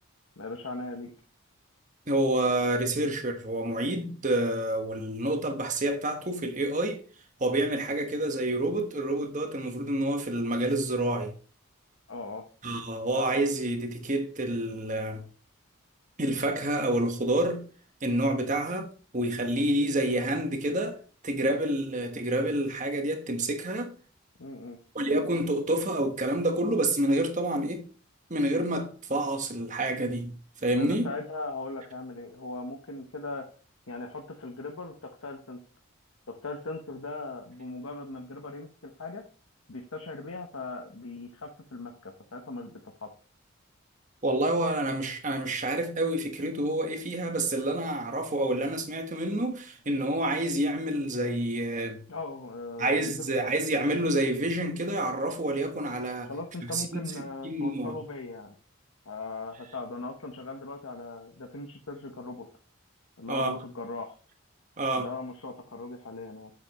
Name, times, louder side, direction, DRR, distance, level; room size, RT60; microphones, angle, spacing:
voice 1, 0.4-1.1 12.1-12.4 24.4-24.8 30.7-33.5 33.9-35.6 36.3-39.2 39.7-43.1 52.1-53.4 56.3-58.6 59.1-62.5 63.2-64.2 65.0-66.5, left 3 dB, 80° left, 1.0 m, -39 dB
voice 2, 2.1-7.0 7.4-11.3 12.6-15.2 16.2-17.6 18.0-18.9 19.1-21.0 21.2-23.9 24.9-27.8 28.3-30.4 30.6-31.1 44.2-52.0 52.8-56.3 56.6-58.0 63.3-63.6 64.8-65.1, right 1 dB, 35° right, 1.3 m, -28 dB
7.8 x 7.3 x 3.1 m
head